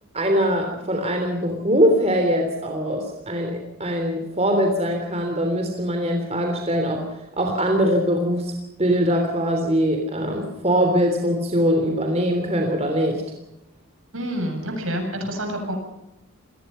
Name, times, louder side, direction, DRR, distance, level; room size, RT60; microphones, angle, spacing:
voice 1, 0.1-8.5 8.8-13.2, equal, 30° right, 3 dB, 3.3 m, -22 dB
voice 2, 14.1-15.8, equal, 65° right, 5 dB, 7.6 m, -28 dB
27.5 x 20.0 x 5.6 m, 0.89 s
head